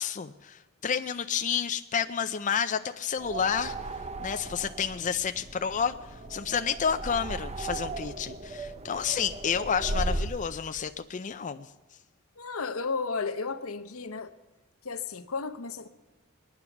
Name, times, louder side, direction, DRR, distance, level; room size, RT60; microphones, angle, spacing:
voice 1, 0.0-3.7 4.2-5.9 6.3-11.7, left 7 dB, 35° left, 0.5 m, -30 dB
sound 1, 3.2-10.5, right 2 dB, 30° right, 0.7 m, -36 dB
voice 2, 12.4-14.3 14.8-15.9, left 4 dB, 80° left, 0.9 m, -33 dB
23.0 x 9.7 x 5.9 m
head